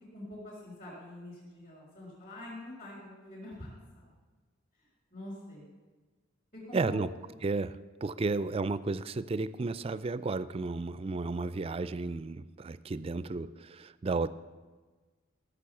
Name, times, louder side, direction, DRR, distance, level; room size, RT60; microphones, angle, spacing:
voice 1, 0.1-4.0 5.1-5.6 6.5-7.0, left 1 dB, 45° left, -9 dB, 4.3 m, -45 dB
voice 2, 6.7-7.1 7.4-14.3, right 3 dB, 30° right, 16 dB, 0.3 m, -33 dB
14.5 x 7.0 x 7.1 m, 1.4 s
head